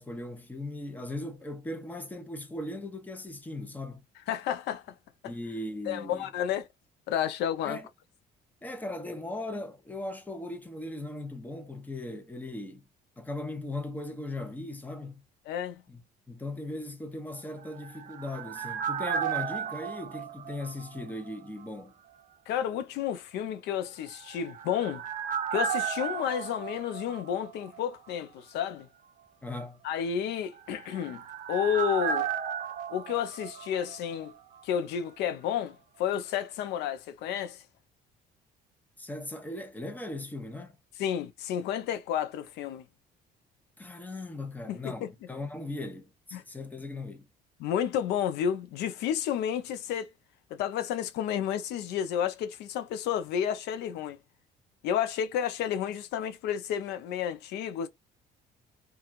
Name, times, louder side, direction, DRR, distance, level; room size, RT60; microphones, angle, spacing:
voice 1, 0.0-4.0 5.2-6.3 7.6-7.9 8.6-12.8 13.2-15.2 15.9-16.0 16.3-21.9 29.4-29.8 39.0-40.8 43.8-47.3, left 2 dB, 10° left, 0.7 m, -38 dB
voice 2, 4.3-4.8 5.2-5.3 5.9-6.7 7.1-7.8 15.5-15.8 22.5-25.0 25.5-28.9 29.8-31.2 31.5-32.3 32.9-34.3 34.6-37.6 41.0-42.8 44.7-45.1 46.3-46.4 47.6-50.1 50.5-54.2 54.8-57.9, left 9 dB, 85° left, 0.5 m, -31 dB
sound 1, 17.5-21.4 21.6-21.7 24.1-27.8 28.1-28.2 30.4-34.3 34.6-34.7, right 8 dB, 50° right, 0.6 m, -34 dB
2.9 x 2.3 x 2.4 m
cardioid pair, 110°, 17 cm